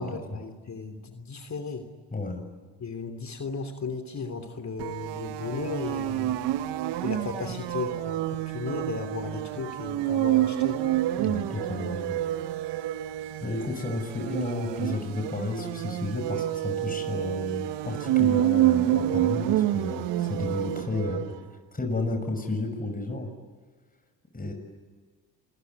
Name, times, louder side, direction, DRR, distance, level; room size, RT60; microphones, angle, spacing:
voice 1, 0.0-1.9 2.8-6.4 7.0-10.8, left 4 dB, 40° left, 6 dB, 3.2 m, -35 dB
voice 2, 2.1-2.4 7.4-7.5 11.2-12.2 13.4-21.4 21.7-23.3 24.3-24.5, left 2 dB, 20° left, 4 dB, 6.6 m, -32 dB
sound 1, 4.8-21.4, right 13 dB, 80° right, 1.2 m, -28 dB
28.5 x 21.5 x 9.7 m, 1.5 s
supercardioid pair, 65°, 41 cm